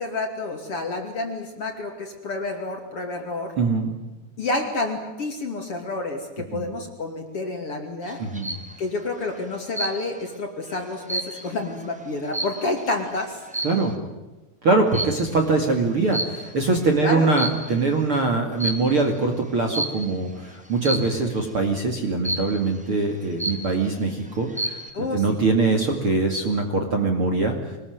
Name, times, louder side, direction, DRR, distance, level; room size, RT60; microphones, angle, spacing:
voice 1, 0.0-3.5 4.4-8.2 8.8-13.4 17.0-17.3 24.9-25.4, left 2 dB, 40° left, 4 dB, 3.0 m, -29 dB
voice 2, 3.6-3.9 6.5-6.7 8.2-8.6 13.6-13.9 14.6-27.6, right 3 dB, 40° right, 3 dB, 2.5 m, -23 dB
sound 1, 8.1-8.7 9.7-10.3 10.7-12.9 13.5-13.9 14.9-15.3 16.1-16.7 17.2-17.9 18.6-19.0 19.7-20.1 20.8-21.3 22.2-22.7 23.1-23.2 23.4-24.0 24.4-24.9, right 1 dB, 5° right, 1.5 m, -30 dB
24.5 x 20.5 x 9.4 m, 1.1 s
omnidirectional pair, 4.7 m